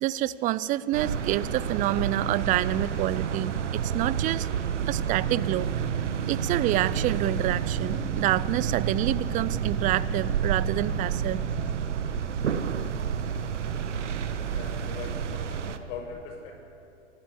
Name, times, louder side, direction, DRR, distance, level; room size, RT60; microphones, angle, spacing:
voice 1, 0.0-4.5 4.9-5.7 6.3-11.4, right 14 dB, 20° right, 18 dB, 0.5 m, -27 dB
sound 1, 0.9-15.8, right 7 dB, 75° right, 1.4 m, -29 dB
voice 2, 14.5-16.5, left 5 dB, 50° left, 1 dB, 6.8 m, -40 dB
27.5 x 12.5 x 8.4 m, 2.7 s
hypercardioid pair, 110°, 36 cm